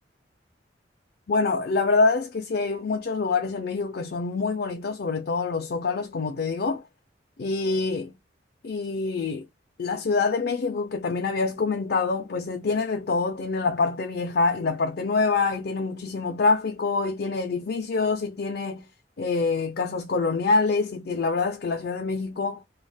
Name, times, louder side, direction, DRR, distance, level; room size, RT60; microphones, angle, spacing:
voice 1, 1.3-6.8 7.4-8.1 8.6-9.5 9.8-18.9 19.2-22.6, left 4 dB, 60° left, 0.5 m, -25 dB
3.3 x 2.4 x 2.3 m
head